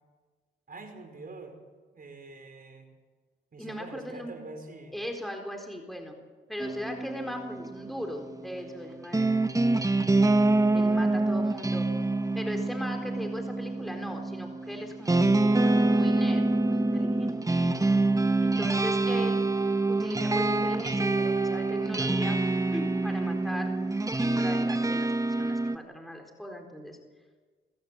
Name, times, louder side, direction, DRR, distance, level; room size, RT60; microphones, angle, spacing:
voice 1, 0.7-1.6 1.9-2.9 3.5-5.0, right 3 dB, 50° right, 6 dB, 4.9 m, -45 dB
voice 2, 3.6-4.4 4.9-6.2 6.5-9.4 9.6-9.9 10.7-11.9 12.3-17.4 18.4-19.5 19.9-22.4 22.7-23.7 24.2-27.0, equal, ahead, 3 dB, 4.2 m, -38 dB
sound 1, 6.6-25.8, right 2 dB, 15° right, 1.2 m, -26 dB
27.0 x 15.5 x 8.3 m, 1.4 s
cardioid pair, 70°, 19 cm